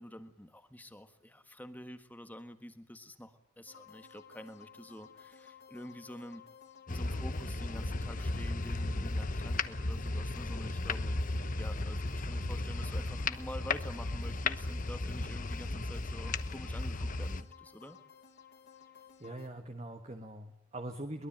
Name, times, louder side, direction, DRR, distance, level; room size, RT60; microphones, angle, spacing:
voice 1, 0.0-6.4 6.9-11.2 11.6-18.0, equal, 10° left, 9 dB, 1.5 m, -48 dB
sound 1, 3.7-19.5, left 7 dB, 55° left, 3.3 m, -56 dB
sound 2, 6.9-17.4, left 2 dB, 40° left, 1.0 m, -35 dB
voice 2, 19.2-21.3, right 1 dB, 30° right, 6 dB, 1.5 m, -42 dB
22.5 x 21.5 x 8.9 m, 0.68 s
head